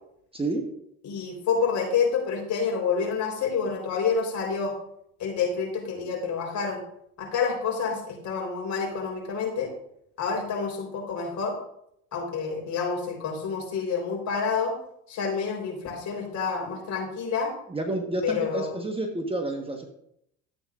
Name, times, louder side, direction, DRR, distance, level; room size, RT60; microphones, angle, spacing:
voice 1, 0.3-0.7 17.7-19.8, right 2 dB, 15° right, 3 dB, 1.3 m, -29 dB
voice 2, 1.0-4.7 5.2-6.8 7.2-9.7 10.2-11.6 12.1-14.7 15.1-17.5 18.2-18.7, left 5 dB, 50° left, 0 dB, 4.1 m, -28 dB
13.0 x 8.0 x 2.5 m, 0.75 s
supercardioid pair, 85°, 37 cm